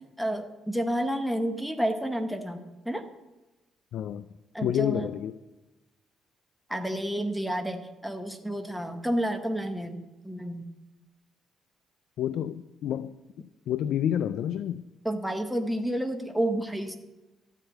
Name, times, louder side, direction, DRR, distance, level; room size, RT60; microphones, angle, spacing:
voice 1, 0.2-3.1 4.5-5.1 6.7-10.7 15.0-17.0, right 1 dB, ahead, 5 dB, 0.8 m, -30 dB
voice 2, 3.9-4.3 4.6-5.3 12.2-13.1 13.7-14.9, left 10 dB, 75° left, 13 dB, 0.3 m, -29 dB
13.0 x 4.5 x 7.9 m, 1.1 s
cardioid pair, 110°, 0 cm